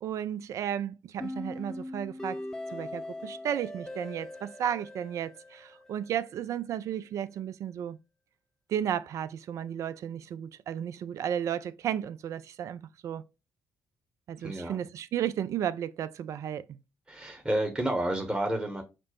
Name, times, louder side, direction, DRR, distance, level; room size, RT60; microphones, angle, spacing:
voice 1, 0.0-2.4 2.7-8.0 8.7-13.2 14.3-16.6, right 9 dB, 50° right, 0.3 m, -33 dB
sound 1, 1.2-6.2, left 1 dB, 10° left, 0.6 m, -40 dB
voice 2, 14.4-14.8 17.1-18.8, right 1 dB, 15° right, 0.9 m, -30 dB
5.8 x 2.0 x 2.9 m
figure-of-eight pair, 45°, 7 cm